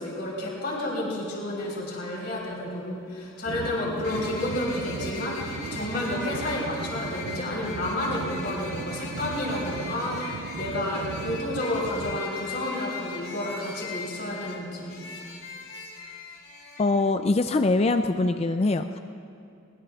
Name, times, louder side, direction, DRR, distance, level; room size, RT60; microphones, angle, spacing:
voice 1, 0.0-15.0, left 1 dB, 50° left, -3 dB, 3.8 m, -31 dB
sound 1, 2.4-2.5 4.0-16.8, left 4 dB, 90° left, 3.0 m, -40 dB
sound 2, 3.4-12.2, right 5 dB, 60° right, 0.3 m, -37 dB
voice 2, 16.8-19.0, left 2 dB, 30° left, 8 dB, 0.4 m, -23 dB
22.0 x 21.0 x 2.4 m, 2.5 s
head